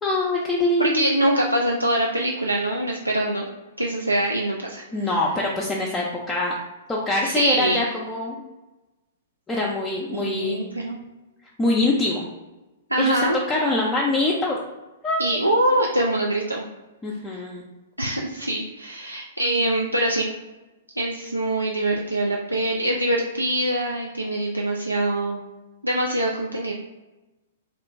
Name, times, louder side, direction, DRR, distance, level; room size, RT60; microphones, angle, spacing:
voice 1, 0.0-1.4 4.9-6.5 6.9-8.4 9.5-10.6 11.6-12.2 13.0-13.2 13.5-14.6 15.0-15.2 17.0-17.6, left 2 dB, 15° left, -4 dB, 0.4 m, -24 dB
voice 2, 0.8-3.5 3.8-5.1 7.2-7.9 10.1-11.0 12.9-13.4 15.2-16.6 17.3-17.4 18.0-20.3 21.0-25.4 25.8-26.7, right 1 dB, 85° right, -1 dB, 0.3 m, -24 dB
2.9 x 2.4 x 3.4 m, 1.1 s
figure-of-eight pair, 105°, 0 cm